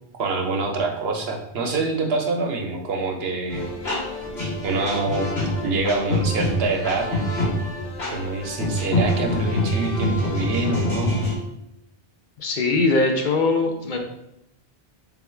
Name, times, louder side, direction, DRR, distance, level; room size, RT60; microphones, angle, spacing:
voice 1, 0.2-3.7 4.6-5.3 5.6-7.1 8.1-11.2, right 3 dB, 80° right, 3 dB, 0.9 m, -25 dB
sound 1, 3.5-11.3, left 1 dB, 85° left, 2.0 m, -25 dB
voice 2, 12.4-14.0, left 3 dB, 55° left, 2 dB, 0.6 m, -21 dB
3.6 x 2.3 x 4.3 m, 0.83 s
omnidirectional pair, 1.0 m